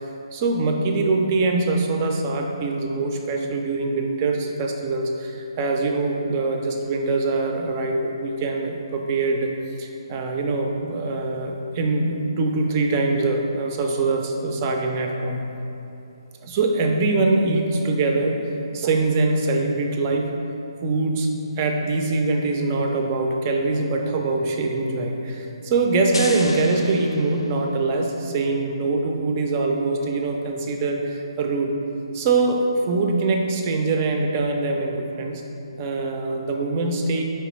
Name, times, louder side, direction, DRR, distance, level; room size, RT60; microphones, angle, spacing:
voice 1, 0.3-9.5 9.8-15.4 16.4-18.4 18.7-20.3 20.8-21.3 21.6-31.7 32.1-35.4 35.8-37.2, right 3 dB, 30° right, 2 dB, 0.3 m, -23 dB
sound 1, 26.1-28.0, left 2 dB, 75° left, 0.4 m, -34 dB
4.5 x 3.3 x 3.0 m, 2.9 s
figure-of-eight pair, 140°, 3 cm